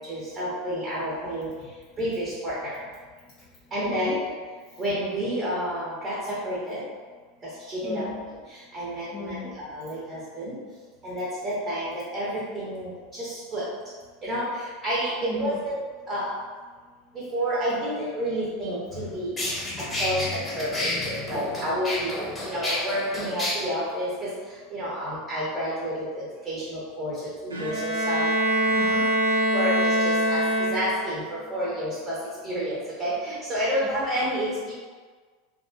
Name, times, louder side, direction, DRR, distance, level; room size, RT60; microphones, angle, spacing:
voice 1, 0.1-1.5 2.0-2.7 3.7-4.2 4.8-6.8 7.7-8.1 8.7-10.6 11.0-13.6 14.2-15.8 16.1-16.3 17.1-19.4 20.0-22.1 22.5-24.3 24.7-27.1 27.4-28.3 28.8-29.0 29.5-30.4 30.7-32.1 32.4-34.7, equal, 30° right, -8 dB, 0.8 m, -30 dB
voice 2, 3.9-4.2 7.8-8.2 9.1-9.6 15.2-15.6 18.9-21.8 22.3-22.7 28.6-29.1, left 5 dB, 40° left, -5 dB, 0.4 m, -38 dB
sound 1, 18.9-19.0 19.4-23.5, left 1 dB, 20° left, 1.0 m, -30 dB
Bowed string instrument, 27.5-31.2, right 1 dB, 85° right, 0.3 m, -24 dB
2.5 x 2.4 x 2.4 m, 1.5 s
figure-of-eight pair, 80°, 0 cm